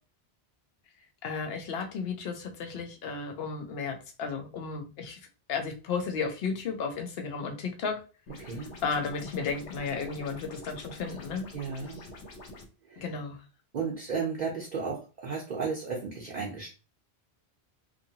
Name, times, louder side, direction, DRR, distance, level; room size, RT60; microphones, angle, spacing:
voice 1, 1.2-5.2 5.5-8.0 8.8-11.5 12.0-12.1 13.0-13.4, left 5 dB, 65° left, 4 dB, 0.9 m, -33 dB
sound 1, 8.3-12.7, left 1 dB, 85° left, 1.1 m, -46 dB
voice 2, 8.4-8.8 11.5-12.0 12.9-13.0 13.7-16.7, right 5 dB, 50° right, -1 dB, 0.6 m, -34 dB
2.6 x 2.6 x 2.7 m, 0.33 s
omnidirectional pair, 1.1 m